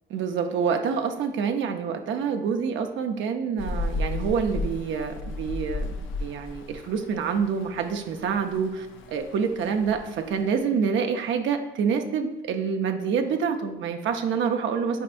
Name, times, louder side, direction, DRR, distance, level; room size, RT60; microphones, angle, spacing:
voice 1, 0.1-5.9 6.2-15.0, right 6 dB, 75° right, 5 dB, 0.6 m, -27 dB
Rain, 3.6-10.6, left 2 dB, 75° left, 0.6 m, -34 dB
8.9 x 4.2 x 2.5 m, 0.92 s
cardioid pair, 90°, 20 cm